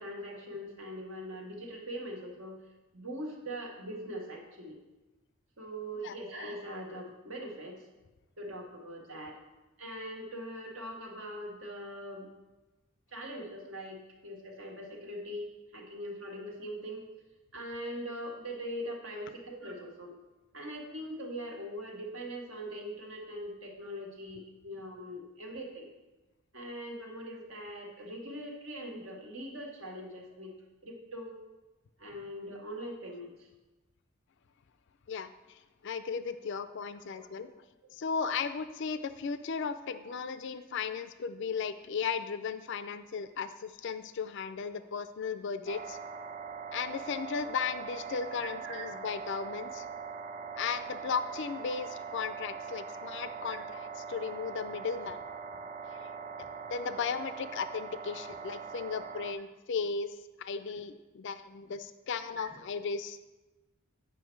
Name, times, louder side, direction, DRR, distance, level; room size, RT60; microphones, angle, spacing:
voice 1, 0.0-2.6 2.9-4.8 5.6-7.8 8.4-9.4 9.8-12.3 13.1-17.0 17.5-20.1 20.5-25.9 26.5-30.5 30.8-31.4 32.0-33.5 37.1-37.3 39.9-40.0 48.4-48.8 51.7-51.8 52.9-53.0 53.5-53.6 60.7-60.8 62.3-62.4, equal, 70° right, -1 dB, 1.7 m, -42 dB
voice 2, 35.1-37.6 37.9-46.0 46.7-49.9 50.6-55.2 55.9-63.3, left 5 dB, 60° left, 12 dB, 0.4 m, -36 dB
sound 1, 45.7-59.3, right 6 dB, 35° right, 0.5 m, -42 dB
9.1 x 5.7 x 4.5 m, 1.1 s
head